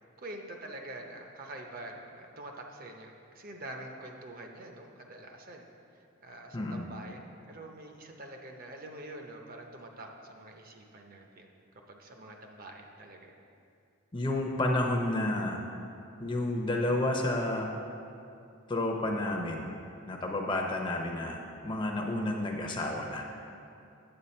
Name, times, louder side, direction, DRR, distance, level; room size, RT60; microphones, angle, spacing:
voice 1, 0.2-5.7 5.9-7.2 7.5-11.5 11.9-13.4, right 1 dB, 40° right, 2 dB, 0.7 m, -46 dB
voice 2, 6.5-6.8 14.1-15.6 16.2-17.7 18.7-19.7 20.1-23.2, left 1 dB, 20° left, 1 dB, 0.6 m, -30 dB
8.7 x 7.3 x 4.3 m, 2.6 s
head